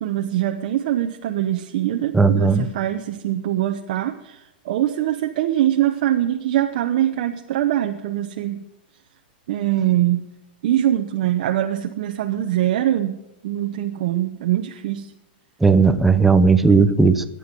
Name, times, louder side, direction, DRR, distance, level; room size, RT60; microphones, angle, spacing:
voice 1, 0.0-8.7 9.5-10.3 10.6-15.1, right 12 dB, 45° right, 4 dB, 0.9 m, -23 dB
voice 2, 2.1-2.7 15.6-17.2, right 4 dB, 5° right, 10 dB, 0.6 m, -15 dB
24.0 x 10.0 x 5.4 m, 0.92 s
supercardioid pair, 170°, 6 cm